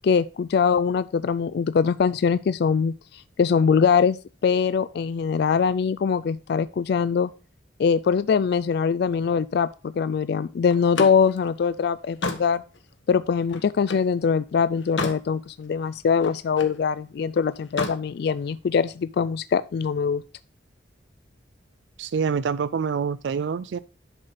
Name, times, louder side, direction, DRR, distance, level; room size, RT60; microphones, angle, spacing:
voice 1, 0.0-4.2 4.4-7.3 7.8-12.6 13.1-20.2, left 6 dB, 55° left, 0.3 m, -22 dB
Slam, 10.7-14.1 14.6-15.3 15.7-16.8 17.6-18.0, left 3 dB, 80° left, 1.3 m, -33 dB
voice 2, 22.0-23.8, right 6 dB, 70° right, 0.4 m, -26 dB
11.0 x 4.2 x 5.0 m
head